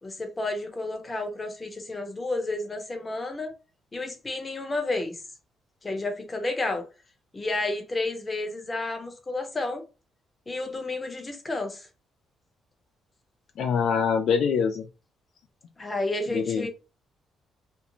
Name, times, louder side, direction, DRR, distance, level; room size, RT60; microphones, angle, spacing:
voice 1, 0.0-3.5 3.9-5.2 5.8-6.9 7.3-9.8 10.5-11.9 15.8-16.7, left 2 dB, 25° left, 0.7 m, -31 dB
voice 2, 13.6-14.9 16.3-16.7, left 6 dB, 70° left, 0.3 m, -24 dB
2.5 x 2.0 x 2.9 m
cardioid pair, 90°, 0 cm